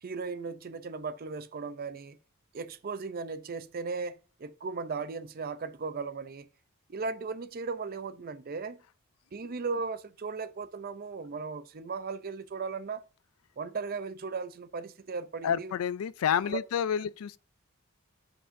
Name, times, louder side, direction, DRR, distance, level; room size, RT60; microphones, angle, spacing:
voice 1, 0.0-2.2 2.5-6.5 6.9-8.8 9.3-13.0 13.6-15.7 16.5-16.6, right 4 dB, 45° right, 0.5 m, -37 dB
voice 2, 15.4-17.4, left 8 dB, 90° left, 0.4 m, -29 dB
13.5 x 5.4 x 2.6 m
head